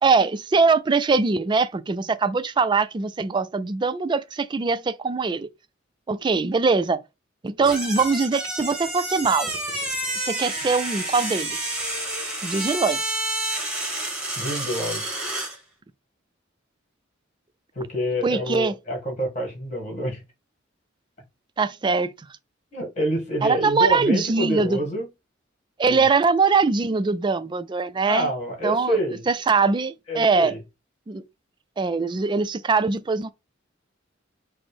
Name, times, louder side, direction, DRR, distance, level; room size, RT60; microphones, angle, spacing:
voice 1, 0.0-5.5 6.1-7.0 7.4-9.5 10.3-11.7 12.4-13.2 18.2-18.7 21.6-22.1 23.4-24.8 25.8-28.3 28.6-29.0 29.3-30.5 31.1-31.2 31.8-33.3, right 4 dB, 25° right, 0.3 m, -22 dB
sound 1, 7.6-15.6, right 1 dB, 5° right, 1.2 m, -29 dB
voice 2, 14.4-15.0 17.7-20.2 22.7-25.1 25.9-26.1 28.0-29.2 30.1-30.6, equal, 40° left, 1.8 m, -27 dB
5.9 x 2.0 x 3.3 m
head